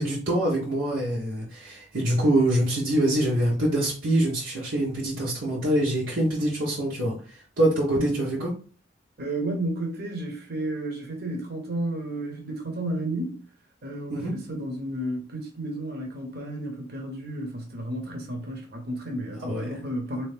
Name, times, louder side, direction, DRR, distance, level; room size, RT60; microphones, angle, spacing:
voice 1, 0.0-7.1 7.6-8.5 14.1-14.3 19.5-19.7, right 1 dB, 90° right, 1.4 m, -24 dB
voice 2, 9.2-13.4 13.8-20.3, right 1 dB, 55° right, 1.0 m, -32 dB
3.7 x 3.0 x 3.4 m
head